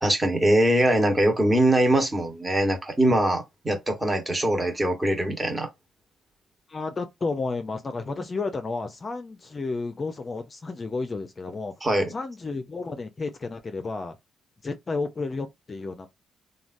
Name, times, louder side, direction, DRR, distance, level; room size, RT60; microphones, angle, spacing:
voice 1, 0.0-5.7 11.8-12.1, right 1 dB, 15° right, 1.1 m, -22 dB
voice 2, 6.7-11.7 12.1-14.2 14.6-16.1, left 3 dB, 35° left, 0.5 m, -32 dB
3.2 x 2.2 x 2.5 m
cardioid pair, 90°, 0 cm